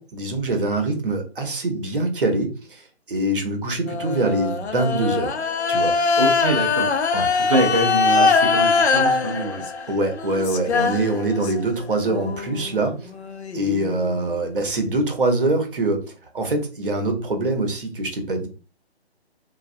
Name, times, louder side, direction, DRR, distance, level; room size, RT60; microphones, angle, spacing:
voice 1, 0.0-5.3 5.7-5.9 7.1-7.4 9.9-13.1 13.5-16.0 16.3-18.5, right 2 dB, 55° right, 4 dB, 0.9 m, -24 dB
sound 1, 3.9-11.7 12.0-14.7, left 4 dB, 75° left, 0.5 m, -22 dB
voice 2, 6.2-6.9 7.5-9.6, right 2 dB, 35° right, -3 dB, 0.5 m, -24 dB
2.3 x 2.2 x 2.5 m, 0.35 s
figure-of-eight pair, 145°, 33 cm